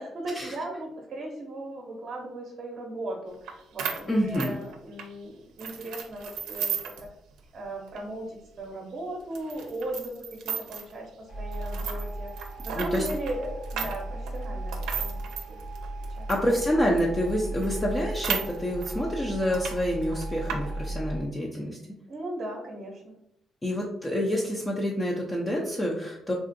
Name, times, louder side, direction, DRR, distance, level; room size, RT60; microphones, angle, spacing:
voice 1, 0.0-7.1 7.5-11.1 11.4-12.3 12.6-15.2 15.5-15.6 16.2-16.3 22.1-23.1, right 1 dB, 50° right, -1 dB, 0.7 m, -37 dB
sound 1, 3.5-3.6 3.8-5.1 5.6-7.1 7.4-7.5 7.9-8.0 8.6-8.7 9.3-10.9 11.5-16.5 17.0-17.1 17.3-17.4 17.6-19.0 19.4-19.8 20.0-20.6, right 7 dB, 85° right, 0.5 m, -34 dB
voice 2, 4.1-4.5 12.7-13.1 16.3-21.8 23.6-26.3, equal, 20° left, -2 dB, 0.5 m, -27 dB
sound 2, 11.3-21.2, right 1 dB, 85° left, 0.9 m, -36 dB
3.6 x 2.4 x 2.5 m, 0.81 s
cardioid pair, 90°, 0 cm